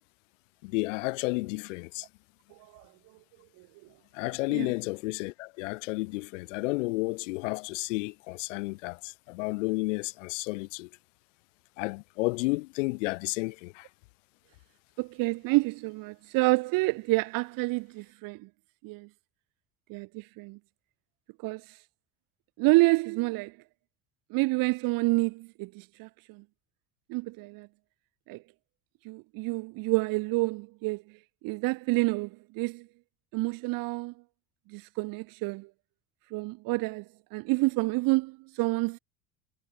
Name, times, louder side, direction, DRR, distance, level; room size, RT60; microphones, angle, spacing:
voice 1, 0.6-2.1 4.1-10.9 11.8-13.9, left 24 dB, 85° left, 4.8 m, -32 dB
voice 2, 2.5-2.9 3.6-3.7 4.5-4.7 15.0-18.5 18.8-19.1 19.9-20.6 21.4-21.8 22.6-23.6 24.3-26.4 27.1-27.7 28.3-28.4 29.0-32.9 33.3-34.1 34.7-35.7 36.3-39.0, right 24 dB, 65° right, 1.5 m, -28 dB
supercardioid pair, 95°, 36 cm